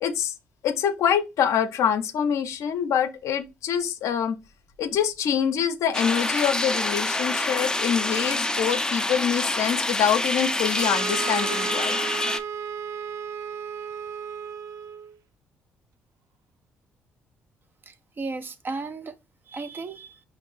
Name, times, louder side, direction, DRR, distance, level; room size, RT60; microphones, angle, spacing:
voice 1, 0.0-0.3 0.6-4.4 4.8-12.0, left 8 dB, 70° left, 0.5 m, -25 dB
sound 1, 5.9-12.4, left 2 dB, 10° left, 0.5 m, -27 dB
sound 2, 10.8-15.2, right 7 dB, 70° right, 0.4 m, -34 dB
voice 2, 17.9-19.2 19.5-20.2, right 3 dB, 40° right, 0.7 m, -35 dB
5.1 x 2.5 x 3.1 m
hypercardioid pair, 55°, 6 cm